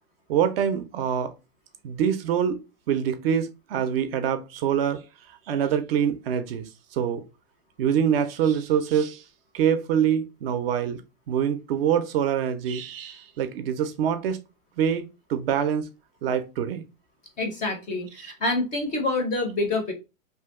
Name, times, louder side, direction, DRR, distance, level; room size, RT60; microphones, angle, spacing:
voice 1, 0.3-1.3 1.8-2.6 2.9-7.2 7.8-9.2 9.5-11.0 11.3-14.4 14.8-15.0 15.3-15.9 16.2-16.8, right 8 dB, 45° right, 0.5 m, -25 dB
voice 2, 17.4-19.9, left 2 dB, 20° left, 0.5 m, -27 dB
2.6 x 2.1 x 3.5 m
hypercardioid pair, 125°, 43 cm